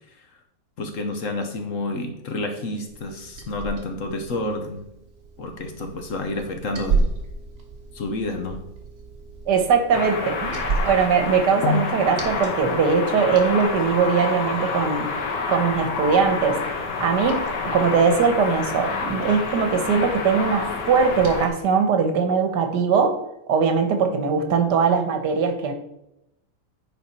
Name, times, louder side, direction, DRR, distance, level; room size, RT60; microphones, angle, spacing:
voice 1, 0.8-4.8 5.4-7.1 7.9-8.6 11.6-11.8, left 2 dB, 55° left, 5 dB, 1.1 m, -29 dB
Liquid, 2.9-21.5, right 4 dB, 55° right, 1.5 m, -34 dB
voice 2, 9.5-15.1 15.5-16.6 17.0-17.4 17.7-23.2 23.5-25.7, right 5 dB, 80° right, 7 dB, 1.6 m, -21 dB
sound 1, 9.9-21.5, left 4 dB, 85° left, 1.6 m, -28 dB
10.0 x 4.0 x 4.2 m, 0.85 s
omnidirectional pair, 1.8 m